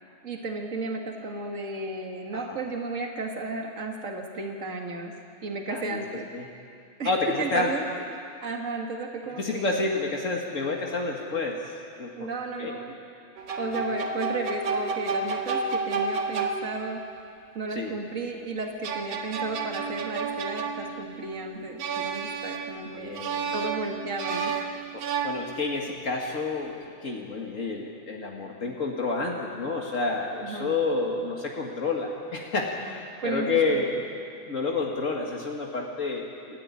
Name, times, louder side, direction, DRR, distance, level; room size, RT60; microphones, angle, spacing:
voice 1, 0.2-5.1 5.4-6.3 7.0-7.8 8.1-9.8 12.1-12.9 13.6-17.0 17.5-23.2 23.5-24.5 30.4-30.7 33.2-33.8, right 3 dB, 65° right, 2 dB, 0.7 m, -33 dB
voice 2, 5.7-6.0 6.3-6.5 7.0-7.7 9.3-12.3 12.6-12.8 13.6-13.8 17.7-17.9 22.9-23.5 24.9-26.7 27.0-34.0 34.5-36.6, left 3 dB, 65° left, -1 dB, 0.7 m, -29 dB
sound 1, 13.4-17.0 18.6-21.3 21.8-22.9 23.1-25.8, right 4 dB, 50° right, 2.3 m, -31 dB
27.0 x 14.0 x 9.8 m, 2.5 s
omnidirectional pair, 4.5 m